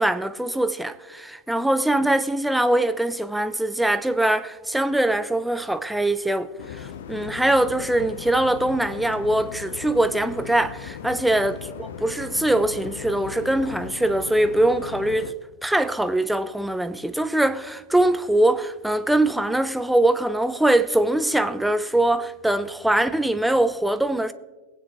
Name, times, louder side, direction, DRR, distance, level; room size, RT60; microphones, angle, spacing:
voice 1, 0.0-15.3 15.6-24.3, right 1 dB, 5° right, 0.5 m, -22 dB
sound 1, 6.6-15.3, left 8 dB, 55° left, 0.6 m, -38 dB
21.5 x 9.3 x 2.9 m
figure-of-eight pair, 90°, 0 cm